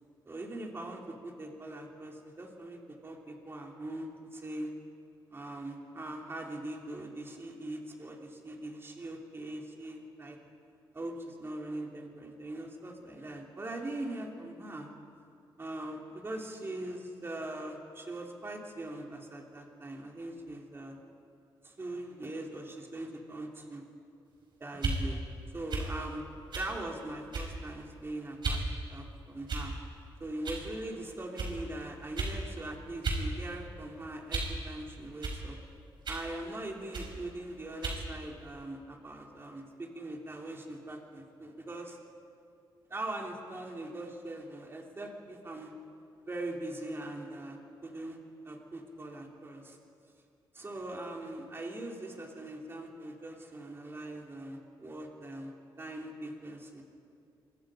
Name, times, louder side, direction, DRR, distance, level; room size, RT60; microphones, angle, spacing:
voice 1, 0.3-4.7 5.3-10.4 10.9-14.9 15.6-21.0 21.6-23.8 24.6-25.2 25.5-26.2 26.5-28.6 28.9-29.7 30.2-35.6 36.1-42.0 42.9-45.7 46.2-48.2 48.4-49.8 50.5-56.8, right 1 dB, 25° right, 0 dB, 3.5 m, -41 dB
sound 1, 24.7-25.0 25.7-25.9 26.5-26.7 27.3-27.6 28.4-28.6 29.5-29.9 30.4-30.6 31.4-31.5 32.2-32.4 33.0-33.2 33.6-34.6 35.2-35.4 36.0-36.3 36.9-37.1 37.8-38.0, right 3 dB, 60° right, 5.3 m, -34 dB
26.0 x 23.5 x 5.1 m, 2.5 s
cardioid pair, 105°, 9 cm